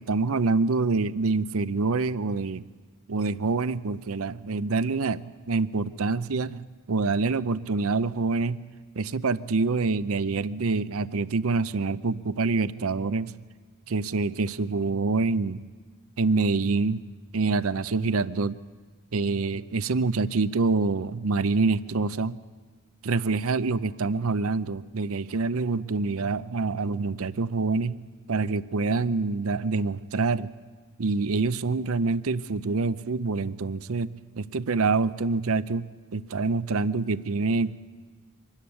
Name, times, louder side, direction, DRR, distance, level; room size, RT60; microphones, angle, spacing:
voice 1, 0.0-2.6 3.1-8.6 9.0-13.4 13.9-15.6 16.2-17.0 17.3-18.6 19.1-22.4 23.0-28.0 28.3-30.5 31.0-37.8, right 3 dB, 70° right, 15 dB, 0.6 m, -26 dB
24.5 x 13.0 x 9.8 m, 1.4 s
head